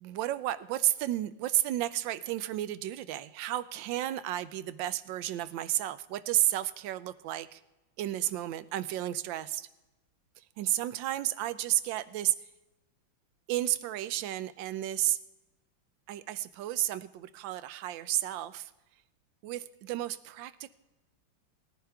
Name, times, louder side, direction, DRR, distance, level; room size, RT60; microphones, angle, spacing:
voice 1, 0.0-7.6 8.0-9.7 10.6-12.3 13.5-15.2 16.1-18.7 19.4-20.7, right 13 dB, 80° right, 15 dB, 1.3 m, -32 dB
19.0 x 10.0 x 3.4 m, 1.0 s
omnidirectional pair, 2.1 m